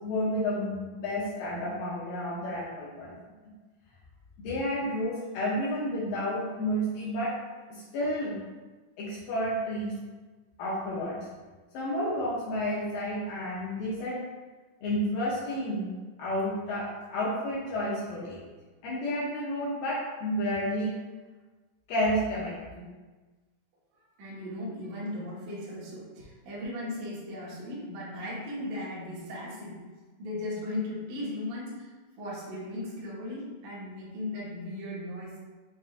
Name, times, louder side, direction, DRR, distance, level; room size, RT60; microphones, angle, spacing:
voice 1, 0.0-3.1 4.4-7.4 7.7-8.4 9.0-10.0 10.6-11.2 11.7-14.3 14.8-15.9 16.2-18.4 18.8-21.0 21.9-22.8, equal, 80° left, -6 dB, 2.0 m, -31 dB
voice 2, 24.2-29.8 30.2-31.9 32.2-35.4, left 1 dB, 65° right, -8 dB, 1.7 m, -37 dB
7.0 x 2.4 x 2.4 m, 1.3 s
omnidirectional pair, 4.8 m